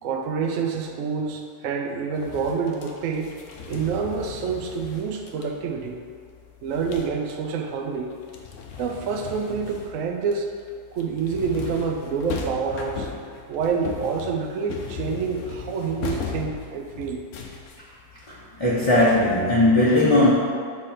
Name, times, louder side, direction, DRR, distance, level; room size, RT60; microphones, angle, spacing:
voice 1, 0.0-3.3 3.7-6.0 6.6-8.1 8.8-10.5 10.9-13.1 13.5-17.2, right 5 dB, 65° right, 2 dB, 0.9 m, -27 dB
sound 1, 2.1-7.6 7.9-19.4, left 6 dB, 60° left, 0.9 m, -38 dB
voice 2, 18.3-20.3, left 1 dB, 25° left, -9 dB, 0.7 m, -18 dB
7.4 x 3.3 x 5.7 m, 2.1 s
omnidirectional pair, 1.7 m